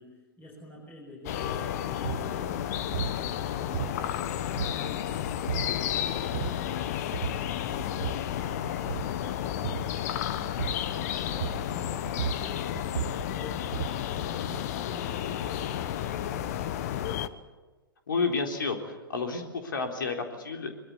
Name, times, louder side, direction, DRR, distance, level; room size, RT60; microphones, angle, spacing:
voice 1, 0.0-7.3 7.6-12.7 13.0-17.3, left 1 dB, 15° left, -3 dB, 6.1 m, -48 dB
sound 1, 1.3-17.3, left 11 dB, 45° left, 1.3 m, -32 dB
sound 2, 2.0-2.3 2.9-3.2 3.7-4.2 4.6-5.1 5.5-5.8 6.2-6.7 7.1-7.5 7.8-8.3 8.8-9.2 9.6-9.9 10.6-10.9 11.4-11.8 12.0-14.1, right 9 dB, 55° right, 1.1 m, -34 dB
voice 2, 18.1-20.7, left 4 dB, 65° left, 4 dB, 3.8 m, -30 dB
23.5 x 23.0 x 8.4 m, 1.2 s
figure-of-eight pair, 110°, 12 cm